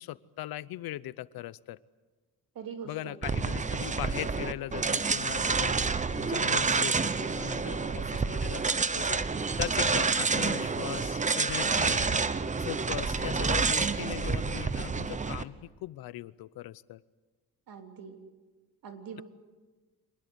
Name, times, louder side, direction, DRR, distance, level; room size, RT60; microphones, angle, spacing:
voice 1, 0.0-1.8 2.8-5.8 6.2-9.2 9.6-12.1 12.6-17.0, left 14 dB, 85° left, 19 dB, 0.8 m, -39 dB
voice 2, 2.5-3.4 7.8-8.3 17.7-18.2 18.8-19.2, right 6 dB, 70° right, 5 dB, 3.2 m, -44 dB
sound 1, 3.2-15.4, right 4 dB, 20° right, 0.9 m, -28 dB
25.5 x 20.0 x 8.1 m, 1.3 s
cardioid pair, 135°, 35 cm